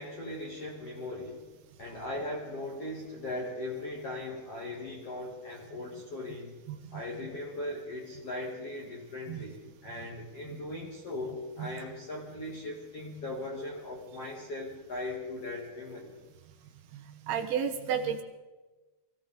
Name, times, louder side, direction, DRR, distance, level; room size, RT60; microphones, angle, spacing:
voice 1, 0.0-1.4 1.8-6.5 6.9-16.2, left 2 dB, 50° left, -3 dB, 1.9 m, -39 dB
voice 2, 6.7-7.0 9.3-9.4 11.6-11.8 17.3-18.2, right 7 dB, 75° right, 4 dB, 3.4 m, -32 dB
24.0 x 16.0 x 3.8 m, 1.2 s
omnidirectional pair, 5.4 m